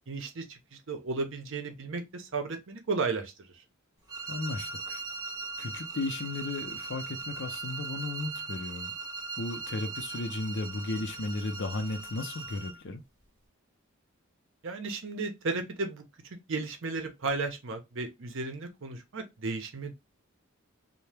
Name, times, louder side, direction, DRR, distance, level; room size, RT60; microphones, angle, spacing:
voice 1, 0.1-0.6 0.9-3.3 14.6-16.0 16.5-20.0, right 3 dB, 65° right, 0.7 m, -34 dB
sound 1, 4.1-12.8, right 4 dB, 20° right, 1.0 m, -39 dB
voice 2, 4.3-5.0 5.6-8.9 9.4-13.0, left 2 dB, 60° left, 0.5 m, -35 dB
2.7 x 2.1 x 3.3 m
head